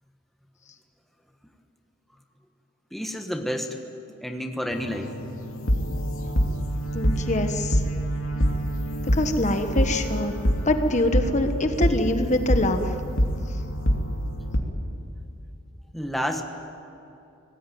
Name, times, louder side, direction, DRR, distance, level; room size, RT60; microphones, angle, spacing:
voice 1, 2.9-3.8 4.2-5.1 15.9-16.4, equal, ahead, 4 dB, 1.4 m, -29 dB
sound 1, 4.7-14.6, equal, 85° left, 2.8 m, -26 dB
voice 2, 6.9-7.8 9.1-10.3 10.6-13.0 13.5-13.6, left 1 dB, 35° left, 6 dB, 1.3 m, -24 dB
25.5 x 19.0 x 9.4 m, 2.8 s
head